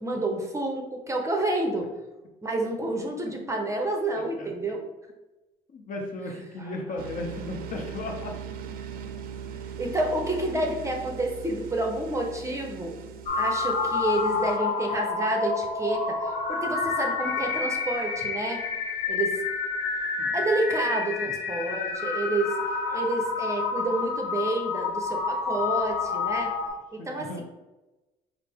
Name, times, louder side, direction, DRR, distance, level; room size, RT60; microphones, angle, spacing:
voice 1, 0.0-1.9 2.4-4.8 6.6-6.7 9.8-13.0 13.4-18.6 19.1-19.4 20.3-26.5 26.9-27.4, right 2 dB, 15° right, 1 dB, 0.7 m, -29 dB
voice 2, 4.2-4.5 5.7-8.4 20.2-20.4 21.2-21.3 27.0-27.4, left 2 dB, 50° left, 2 dB, 0.7 m, -36 dB
sound 1, 7.0-14.6, right 7 dB, 60° right, 0.4 m, -40 dB
sound 2, 13.2-26.7, left 4 dB, 75° left, 1.0 m, -29 dB
5.4 x 2.1 x 3.4 m, 1.1 s
cardioid pair, 110°, 17 cm